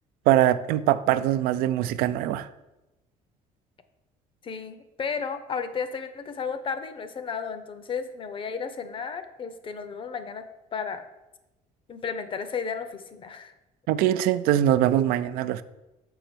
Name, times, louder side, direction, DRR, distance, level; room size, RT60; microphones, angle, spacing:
voice 1, 0.3-2.5 13.9-15.6, right 12 dB, 85° right, 14 dB, 0.4 m, -22 dB
voice 2, 4.4-11.0 11.9-13.5, left 6 dB, 35° left, 10 dB, 0.7 m, -33 dB
6.6 x 5.1 x 4.4 m, 0.99 s
cardioid pair, 115°, 15 cm